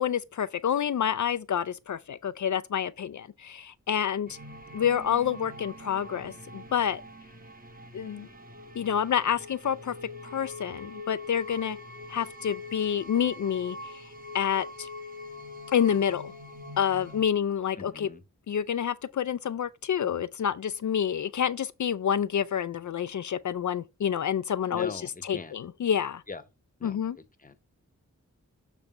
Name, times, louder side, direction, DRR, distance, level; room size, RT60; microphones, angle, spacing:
voice 1, 0.0-4.4 4.7-7.0 7.9-8.3 8.8-9.9 10.3-11.8 12.1-14.0 14.3-14.9 15.7-16.3 16.8-18.1 18.5-24.9 25.2-26.2 26.8-27.2, left 8 dB, 60° left, 0.4 m, -28 dB
sound 1, 4.3-17.2, left 2 dB, 25° right, 1.2 m, -44 dB
voice 2, 17.8-18.2 24.7-25.5 26.3-26.4 26.8-27.6, left 3 dB, 25° left, 0.9 m, -42 dB
7.3 x 3.3 x 5.1 m
cardioid pair, 50°, 34 cm